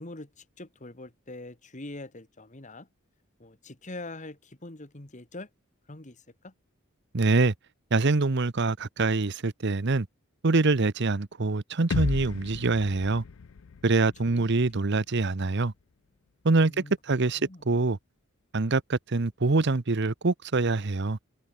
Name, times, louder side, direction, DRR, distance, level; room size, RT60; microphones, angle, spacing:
voice 1, 0.0-2.9 3.4-5.5 5.9-6.5 14.0-14.4 16.6-16.9 17.4-17.6, left 2 dB, 35° left, 1.9 m, -43 dB
voice 2, 7.1-7.5 7.9-10.1 10.4-13.2 13.8-15.7 16.4-18.0 18.5-21.2, right 3 dB, 55° right, 0.9 m, -25 dB
sound 1, 11.9-15.8, left 5 dB, 75° left, 0.5 m, -35 dB
head